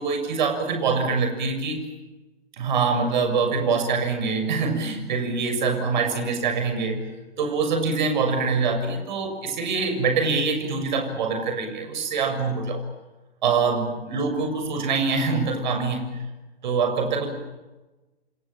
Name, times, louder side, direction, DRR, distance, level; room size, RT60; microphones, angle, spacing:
voice 1, 0.0-1.8 2.6-7.0 7.4-12.8 13.4-16.1 16.6-17.3, right 4 dB, 45° right, 6 dB, 6.7 m, -24 dB
28.0 x 27.0 x 7.4 m, 1.1 s
figure-of-eight pair, 120°, 32 cm